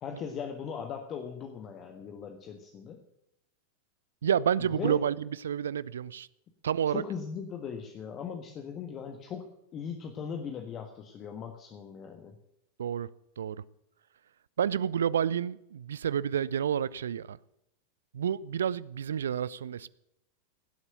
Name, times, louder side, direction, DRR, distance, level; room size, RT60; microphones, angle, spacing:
voice 1, 0.0-3.0 4.8-5.0 6.9-12.4, left 7 dB, 30° left, 1.4 m, -39 dB
voice 2, 4.2-6.3 6.6-7.0 12.8-13.1 13.4-13.6 14.6-17.4 18.1-19.9, right 8 dB, 65° right, 0.4 m, -29 dB
17.0 x 8.1 x 6.6 m
figure-of-eight pair, 90°, 0 cm